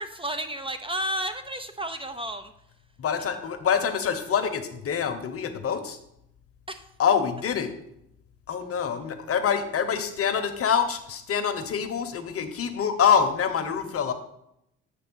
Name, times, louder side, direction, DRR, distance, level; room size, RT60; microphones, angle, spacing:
voice 1, 0.0-2.5 6.7-6.9, right 1 dB, 20° right, 8 dB, 0.5 m, -32 dB
voice 2, 3.0-6.0 7.0-7.7 8.5-14.1, left 7 dB, 50° left, 7 dB, 0.9 m, -25 dB
7.7 x 3.2 x 6.2 m, 0.79 s
cardioid pair, 90°, 30 cm